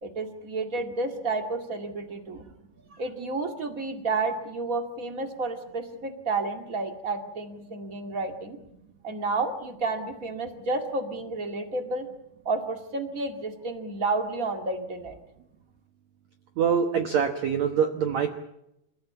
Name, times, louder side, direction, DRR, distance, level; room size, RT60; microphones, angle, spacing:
voice 1, 0.0-2.5 2.9-8.6 9.0-12.1 12.4-15.2, right 3 dB, 30° right, 6 dB, 1.6 m, -31 dB
voice 2, 16.6-18.3, right 7 dB, 70° right, 6 dB, 1.7 m, -24 dB
28.5 x 15.0 x 8.7 m, 0.85 s
omnidirectional pair, 4.9 m